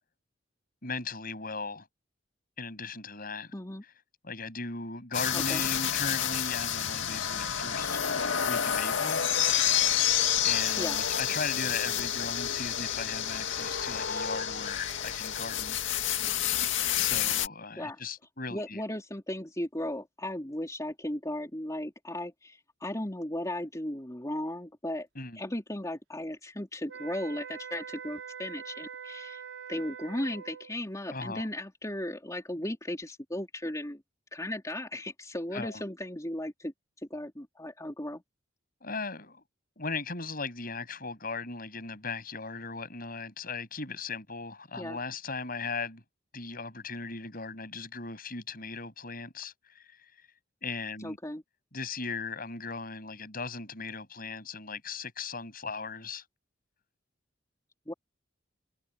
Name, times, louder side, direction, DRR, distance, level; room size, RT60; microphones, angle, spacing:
voice 1, 0.8-1.9 2.6-3.5 4.2-8.0 8.4-9.3 10.4-15.8 16.9-18.8 25.2-25.4 31.1-31.5 35.5-35.8 38.8-39.4 39.8-46.0 46.3-49.8 50.6-51.2 51.7-56.2, left 4 dB, 50° left, 7.7 m, -37 dB
voice 2, 3.5-3.8 5.3-5.7 10.8-11.0 17.8-18.0 18.5-25.1 25.4-29.4 29.7-34.0 34.3-36.7 37.1-38.2 44.8-45.0 51.0-51.4 57.9-58.0, left 1 dB, 15° left, 3.6 m, -36 dB
sound 1, 5.1-17.5, left 9 dB, 80° left, 2.1 m, -29 dB
sound 2, 26.9-30.8, right 7 dB, 90° right, 4.9 m, -43 dB
head